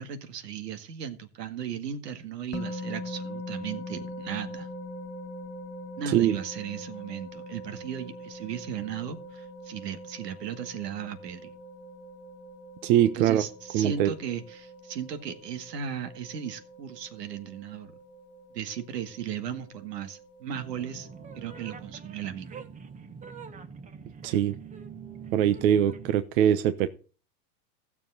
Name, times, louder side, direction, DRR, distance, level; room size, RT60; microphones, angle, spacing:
voice 1, 0.0-4.7 6.0-11.5 13.2-17.9 18.5-21.1 21.4-22.5, right 8 dB, 85° right, 9 dB, 2.0 m, -36 dB
sound 1, 2.5-21.9, left 1 dB, 20° left, 1.6 m, -43 dB
voice 2, 6.1-6.4 12.8-13.4 13.7-14.1 24.2-24.6 25.3-26.9, right 10 dB, 55° right, 11 dB, 1.0 m, -22 dB
sound 2, 20.5-26.2, right 6 dB, 15° right, 1.0 m, -44 dB
15.5 x 7.1 x 4.0 m, 0.37 s
hypercardioid pair, 130°, 48 cm